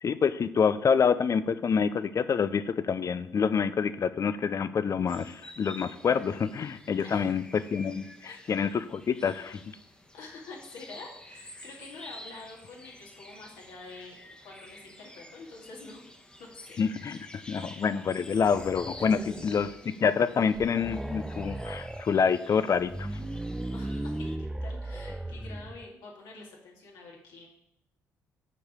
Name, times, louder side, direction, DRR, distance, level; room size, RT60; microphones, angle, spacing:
voice 1, 0.0-9.6 16.8-17.2 17.5-23.1, left 6 dB, 45° left, 14 dB, 0.6 m, -27 dB
sound 1, 5.1-24.4, left 1 dB, 15° left, 1.2 m, -50 dB
voice 2, 7.0-7.4 8.2-8.5 10.1-14.2 14.4-16.0 16.4-17.3 19.0-19.3 23.7-27.5, left 3 dB, 75° left, -2 dB, 2.3 m, -47 dB
sound 2, 18.3-19.9 20.2-20.3 20.5-22.1 22.7-25.9, right 1 dB, 10° right, 0.4 m, -37 dB
7.7 x 4.8 x 6.7 m, 0.82 s
hypercardioid pair, 55°, 7 cm